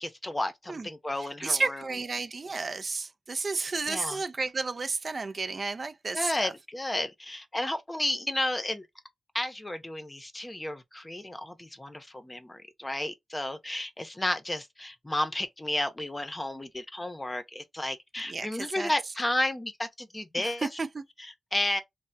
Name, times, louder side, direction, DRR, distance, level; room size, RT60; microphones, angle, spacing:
voice 1, 0.0-1.8 3.9-4.2 6.1-8.9 9.3-20.7 21.2-21.8, left 1 dB, 15° left, 0.7 m, -32 dB
voice 2, 1.2-6.5 18.3-18.9 20.4-21.0, right 3 dB, 40° right, 0.4 m, -32 dB
3.3 x 2.2 x 2.6 m
wide cardioid pair, 105°, 0 cm